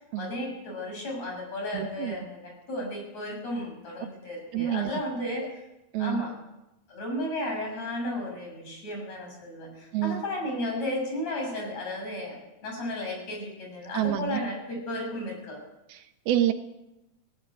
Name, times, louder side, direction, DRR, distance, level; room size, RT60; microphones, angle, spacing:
voice 1, 0.0-5.4 6.0-6.3 6.9-12.4 12.6-15.6, left 1 dB, 45° left, 1 dB, 8.0 m, -34 dB
voice 2, 1.7-2.2 4.5-4.9 5.9-6.2 9.9-10.2 13.9-14.4 15.9-16.5, right 12 dB, 85° right, 8 dB, 3.0 m, -28 dB
18.0 x 16.0 x 9.1 m, 0.94 s
omnidirectional pair, 4.4 m